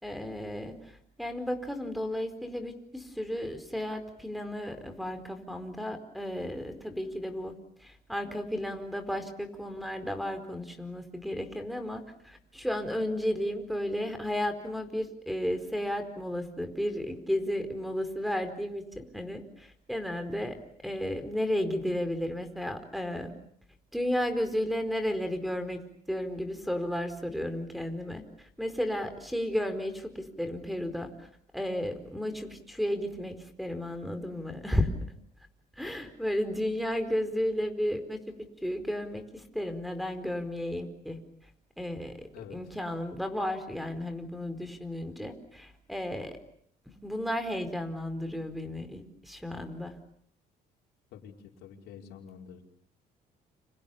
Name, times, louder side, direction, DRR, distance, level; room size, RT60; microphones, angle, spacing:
voice 1, 0.0-7.5 7.8-23.3 23.9-25.8 26.1-31.3 31.5-34.9 35.7-38.3 38.6-41.2 41.8-46.4 46.9-50.0, left 1 dB, ahead, 10 dB, 4.6 m, -33 dB
voice 2, 51.1-52.6, left 8 dB, 80° left, 0 dB, 5.1 m, -47 dB
29.5 x 28.0 x 7.1 m, 0.65 s
cardioid pair, 110°, 17 cm